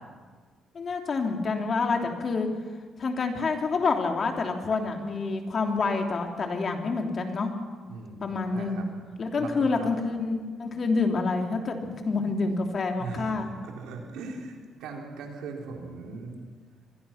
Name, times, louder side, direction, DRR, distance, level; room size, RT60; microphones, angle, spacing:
voice 1, 0.7-2.5 3.0-7.5 8.2-8.9 9.2-13.5, left 4 dB, 45° left, 3 dB, 3.2 m, -27 dB
voice 2, 7.9-8.9 9.4-9.9 13.0-13.4 13.6-16.4, right 4 dB, 90° right, 1 dB, 3.8 m, -39 dB
25.0 x 21.5 x 5.9 m, 1.5 s
cardioid pair, 90°, 0 cm